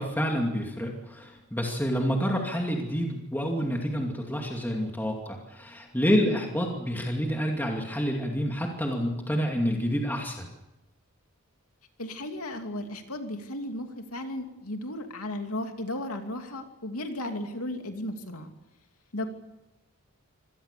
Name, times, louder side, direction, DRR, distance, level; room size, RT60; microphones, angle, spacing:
voice 1, 0.0-10.5, equal, 10° left, 1 dB, 2.5 m, -28 dB
voice 2, 6.1-6.4 12.0-18.5 19.1-19.3, left 1 dB, 75° left, 5 dB, 2.8 m, -35 dB
25.5 x 19.0 x 6.9 m, 0.96 s
head